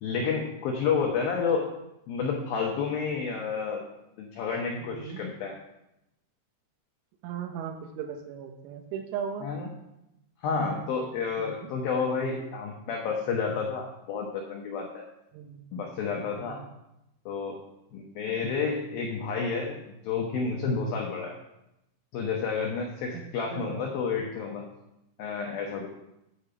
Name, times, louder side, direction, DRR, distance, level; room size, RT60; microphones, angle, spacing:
voice 1, 0.0-1.7 2.1-3.8 4.2-5.6 9.4-9.7 10.4-15.0 15.7-16.6 17.3-17.6 17.9-21.4 22.1-24.7 25.2-25.9, left 5 dB, 80° left, 1 dB, 2.1 m, -30 dB
voice 2, 4.8-5.2 7.2-9.5 11.4-11.7 15.3-15.7 16.4-16.7 23.1-23.2 23.5-23.9, right 8 dB, 85° right, 3 dB, 3.2 m, -37 dB
8.6 x 5.1 x 6.8 m, 0.88 s
omnidirectional pair, 5.4 m